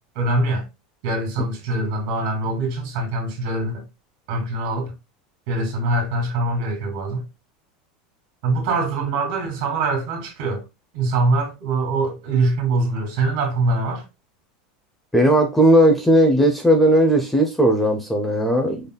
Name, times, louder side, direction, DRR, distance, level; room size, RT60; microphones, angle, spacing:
voice 1, 0.2-0.6 1.0-3.8 4.3-4.9 5.5-7.2 8.4-10.6 10.9-14.0, right 2 dB, 55° right, 2.5 m, -23 dB
voice 2, 15.1-18.8, right 1 dB, 5° left, 0.6 m, -16 dB
5.3 x 3.9 x 2.3 m
supercardioid pair, 165°, 4 cm